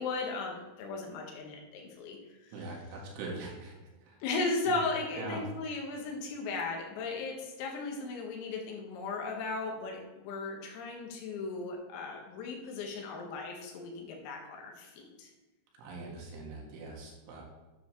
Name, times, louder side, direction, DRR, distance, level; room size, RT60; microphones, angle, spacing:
voice 1, 0.0-2.6 4.2-15.3, left 3 dB, 85° left, 0 dB, 4.4 m, -36 dB
voice 2, 2.5-3.8 4.1-4.2 5.2-5.4 15.8-17.4, right 2 dB, 70° right, -1 dB, 4.1 m, -42 dB
10.5 x 9.2 x 3.2 m, 1.2 s
omnidirectional pair, 5.9 m